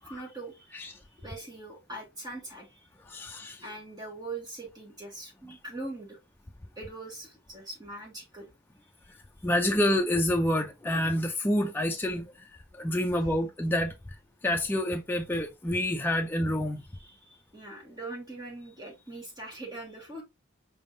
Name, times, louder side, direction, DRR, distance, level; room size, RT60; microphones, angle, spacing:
voice 1, 0.0-2.9 3.6-6.2 6.8-8.5 16.9-20.2, right 2 dB, 20° right, 1.5 m, -42 dB
voice 2, 3.1-3.6 5.5-5.6 9.4-12.5 12.7-13.9 14.4-16.8, left 1 dB, 10° left, 0.3 m, -28 dB
5.1 x 3.6 x 2.5 m
head